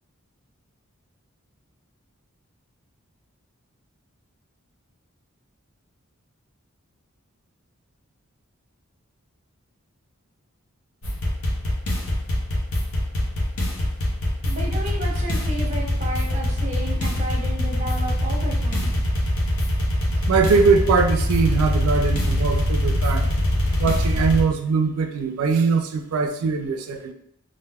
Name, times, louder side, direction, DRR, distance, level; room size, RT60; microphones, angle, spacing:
sound 1, 11.0-24.4, left 1 dB, 80° left, 0.7 m, -23 dB
voice 1, 14.4-18.9, equal, 35° right, -2 dB, 0.7 m, -33 dB
voice 2, 20.2-23.3 23.8-27.1, right 5 dB, 80° right, 7 dB, 0.4 m, -21 dB
2.5 x 2.2 x 3.4 m, 0.75 s
head